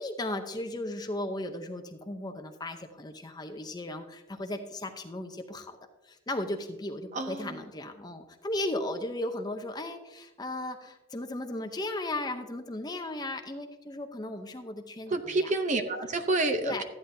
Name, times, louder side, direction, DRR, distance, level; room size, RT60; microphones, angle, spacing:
voice 1, 0.0-5.8 6.0-15.5 16.6-16.8, left 1 dB, 20° left, 6 dB, 0.7 m, -36 dB
voice 2, 7.1-7.6 15.1-16.8, right 2 dB, 35° right, 7 dB, 0.7 m, -29 dB
13.5 x 9.3 x 2.7 m, 1.0 s
head